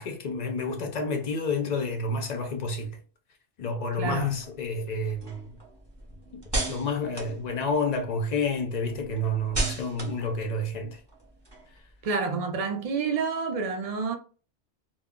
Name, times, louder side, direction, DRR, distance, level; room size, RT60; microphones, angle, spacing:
voice 1, 0.0-3.0 3.6-5.5 6.3-6.4 6.7-11.0, left 2 dB, 55° left, 0.4 m, -29 dB
voice 2, 4.0-4.4 12.0-14.2, right 5 dB, 65° right, 0.3 m, -29 dB
sound 1, 4.2-8.2 8.6-12.0, right 1 dB, 25° right, 0.7 m, -36 dB
2.2 x 2.0 x 3.5 m
omnidirectional pair, 1.2 m